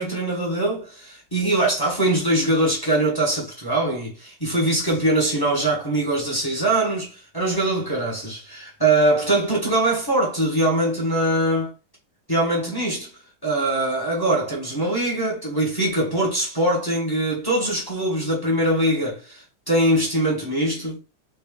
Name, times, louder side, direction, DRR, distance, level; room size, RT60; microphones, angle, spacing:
voice 1, 0.0-11.7 12.3-13.1 13.4-21.0, right 1 dB, 20° left, 0.5 m, -22 dB
3.3 x 2.6 x 3.6 m
omnidirectional pair, 2.3 m